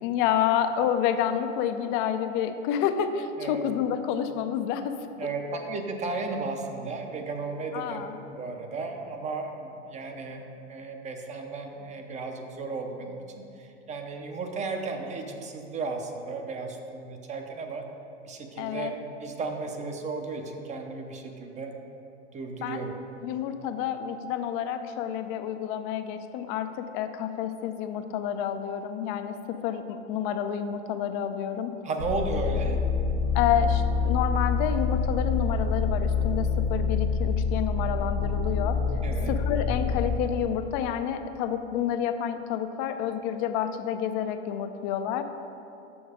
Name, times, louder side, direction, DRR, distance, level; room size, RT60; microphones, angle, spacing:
voice 1, 0.0-4.9 7.7-8.2 18.6-18.9 22.6-22.8 23.2-31.7 33.3-38.8 39.3-45.2, left 9 dB, 40° left, 9 dB, 0.6 m, -29 dB
voice 2, 5.2-17.8 18.3-18.9 19.2-21.7 22.3-22.9 31.8-32.8 39.0-39.4, right 3 dB, 20° right, 4 dB, 0.7 m, -34 dB
sound 1, 32.0-40.2, left 5 dB, 65° left, 1.4 m, -26 dB
7.0 x 6.2 x 5.0 m, 2.7 s
hypercardioid pair, 110°, 37 cm